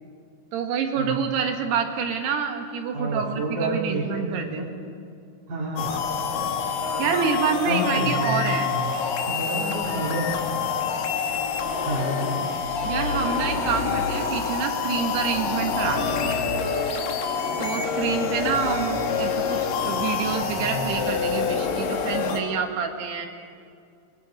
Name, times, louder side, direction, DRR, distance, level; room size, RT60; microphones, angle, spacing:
voice 1, 0.5-4.7 7.0-8.7 12.8-16.4 17.6-23.3, right 6 dB, 80° right, 4 dB, 3.6 m, -27 dB
voice 2, 2.9-4.7 5.5-5.9 7.6-8.9 9.3-10.5 11.8-12.5 20.6-21.0, right 1 dB, 55° right, -6 dB, 4.1 m, -29 dB
sound 1, 5.8-22.4, left 5 dB, 65° left, 3.0 m, -27 dB
25.5 x 23.5 x 5.2 m, 2.3 s
omnidirectional pair, 4.7 m